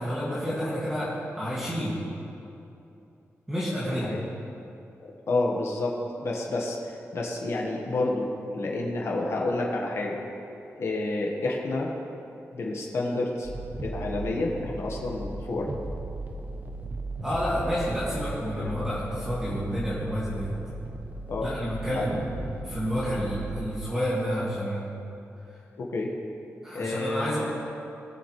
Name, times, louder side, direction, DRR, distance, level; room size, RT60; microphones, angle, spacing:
voice 1, 0.0-1.9 3.5-4.1 17.2-20.5 21.4-22.2 22.6-24.8 26.6-27.4, equal, 10° right, -9 dB, 2.1 m, -29 dB
voice 2, 3.9-4.2 5.0-6.0 6.2-8.3 8.5-10.2 10.8-11.9 12.5-13.5 13.8-15.7 18.6-18.8 21.3-21.5 21.9-22.0 25.8-26.1 26.7-27.4, left 2 dB, 60° left, -2 dB, 1.4 m, -29 dB
sound 1, 13.4-23.7, right 2 dB, 35° right, 0.8 m, -36 dB
19.5 x 7.2 x 3.2 m, 2.8 s
wide cardioid pair, 145°, 5 cm